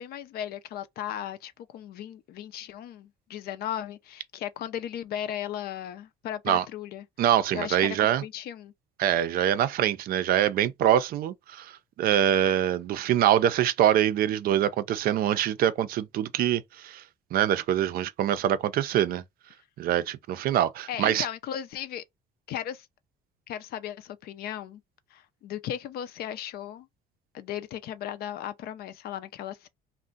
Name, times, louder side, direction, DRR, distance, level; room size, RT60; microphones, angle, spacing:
voice 1, 0.0-7.0 7.5-8.7 20.9-22.0 22.5-22.9 23.5-24.8 25.1-26.9 27.3-29.7, left 10 dB, 65° left, 0.5 m, -36 dB
voice 2, 7.2-8.2 9.0-17.0 17.3-19.2 19.8-21.3, right 11 dB, 60° right, 0.4 m, -24 dB
2.5 x 2.1 x 3.7 m
cardioid pair, 110°, 17 cm